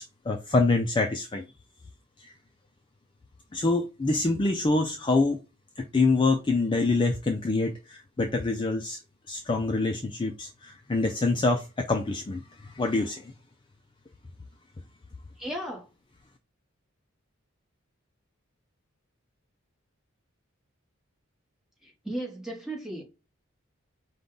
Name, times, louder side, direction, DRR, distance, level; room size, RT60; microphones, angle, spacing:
voice 1, 0.0-1.4 2.2-2.3 3.5-5.4 5.8-9.0 9.3-13.3, left 3 dB, 25° left, 0.3 m, -26 dB
voice 2, 15.4-15.9 21.8-23.0, right 1 dB, ahead, 1.2 m, -35 dB
5.1 x 2.3 x 3.8 m
head